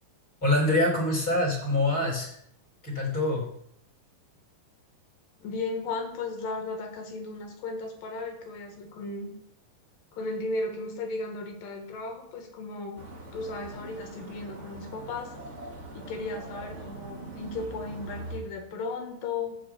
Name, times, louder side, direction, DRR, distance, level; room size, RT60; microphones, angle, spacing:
voice 1, 0.4-2.4 2.8-3.5, left 2 dB, 25° left, -1 dB, 3.6 m, -25 dB
voice 2, 5.4-9.3 10.1-13.1 13.3-15.3 15.9-19.6, left 3 dB, 75° left, 3 dB, 3.2 m, -35 dB
sound 1, 13.0-18.4, right 2 dB, 50° right, 0.8 m, -42 dB
12.5 x 4.5 x 7.9 m, 0.70 s
omnidirectional pair, 4.1 m